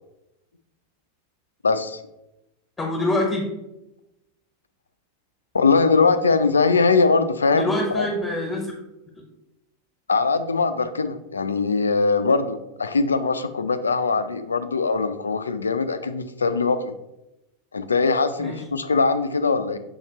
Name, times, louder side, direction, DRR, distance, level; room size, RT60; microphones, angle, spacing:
voice 1, 1.6-2.0 5.5-8.1 10.1-16.9 17.7-19.8, left 4 dB, 85° left, 10 dB, 0.3 m, -21 dB
voice 2, 2.8-3.5 7.5-8.8 18.4-18.6, left 1 dB, 15° left, -1 dB, 1.3 m, -25 dB
6.3 x 2.8 x 3.0 m, 0.92 s
figure-of-eight pair, 90°, 0 cm